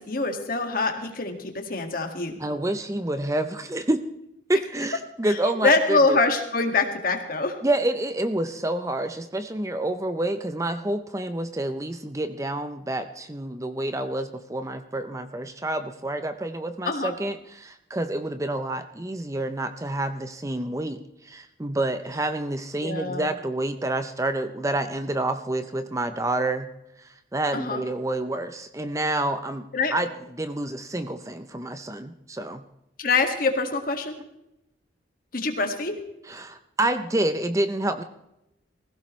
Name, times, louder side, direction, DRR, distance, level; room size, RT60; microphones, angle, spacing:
voice 1, 0.0-2.4 5.6-7.6 16.9-17.1 22.8-23.3 27.5-27.8 29.7-29.9 33.0-34.2 35.3-35.9, left 3 dB, 45° left, 4 dB, 1.9 m, -24 dB
voice 2, 2.4-4.0 4.5-6.2 7.6-26.7 27.0-32.6 36.3-38.0, right 1 dB, 15° right, 9 dB, 0.6 m, -28 dB
19.0 x 16.0 x 3.2 m, 0.86 s
head